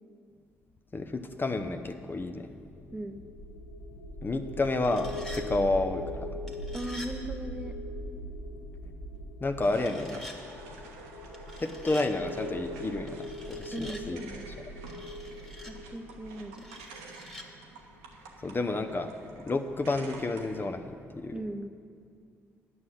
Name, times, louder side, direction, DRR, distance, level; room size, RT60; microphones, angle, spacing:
voice 1, 0.9-2.5 4.2-6.3 9.4-10.3 11.6-14.2 18.4-19.1 19.5-20.9 21.2-21.4, left 2 dB, 30° left, 7 dB, 0.7 m, -30 dB
sound 1, 2.7-17.7, equal, 80° left, 0.7 m, -41 dB
sound 2, 4.6-5.5 6.5-7.1 9.8-10.4 11.3-12.1 13.1-14.0 14.9-15.7 16.6-17.5, left 1 dB, ahead, 1.6 m, -46 dB
voice 2, 6.7-7.8 13.7-14.5 15.7-16.7 21.3-21.7, right 1 dB, 15° right, 7 dB, 0.7 m, -38 dB
sound 3, 9.6-20.7, right 4 dB, 85° right, 1.0 m, -50 dB
9.5 x 6.3 x 7.6 m, 2.3 s
hypercardioid pair, 45°, 7 cm